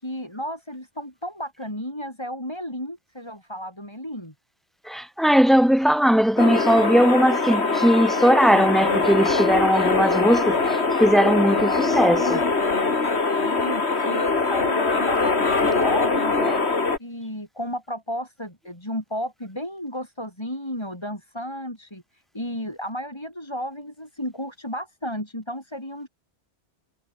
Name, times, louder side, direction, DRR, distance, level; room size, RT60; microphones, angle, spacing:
voice 1, 0.0-4.3 13.4-16.6 17.0-26.1, equal, 25° left, 7.1 m, -33 dB
voice 2, 4.8-12.4 16.4-16.6, equal, ahead, 1.7 m, -19 dB
sound 1, 6.4-17.0, left 3 dB, 70° left, 2.8 m, -22 dB
omnidirectional pair, 1.1 m